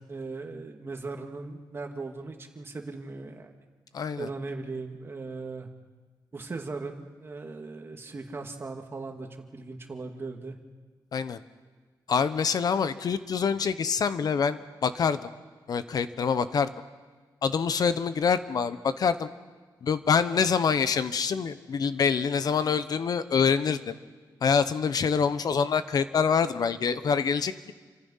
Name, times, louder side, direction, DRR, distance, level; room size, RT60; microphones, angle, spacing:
voice 1, 0.0-3.5 4.2-5.7 6.3-10.6, right 3 dB, 30° right, 4 dB, 2.2 m, -38 dB
voice 2, 3.9-4.3 11.1-11.4 12.1-15.3 15.7-16.7 17.4-19.3 19.8-24.0 24.4-27.7, left 6 dB, 55° left, 12 dB, 1.1 m, -26 dB
28.5 x 25.5 x 5.7 m, 1.4 s
wide cardioid pair, 155°, 8 cm